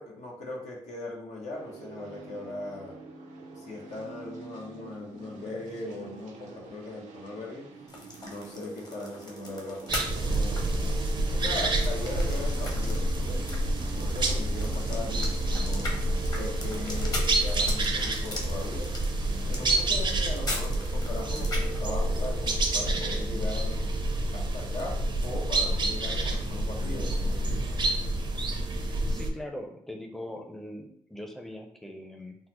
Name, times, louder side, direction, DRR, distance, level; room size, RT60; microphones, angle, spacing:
voice 1, 0.0-3.0 3.6-7.7 8.2-10.6 11.3-13.4 13.8-15.9 16.3-18.9 19.5-23.8 24.3-27.9, left 2 dB, 75° left, -2 dB, 0.8 m, -39 dB
sound 1, 1.5-17.4, right 4 dB, 85° right, 0.6 m, -47 dB
sound 2, 7.9-21.8, left 1 dB, 35° left, 0.9 m, -41 dB
sound 3, 9.9-29.3, right 1 dB, 40° right, 0.6 m, -28 dB
voice 2, 28.8-32.4, left 1 dB, ahead, 3 dB, 0.6 m, -41 dB
3.8 x 2.0 x 3.0 m, 0.68 s
cardioid pair, 65°, 12 cm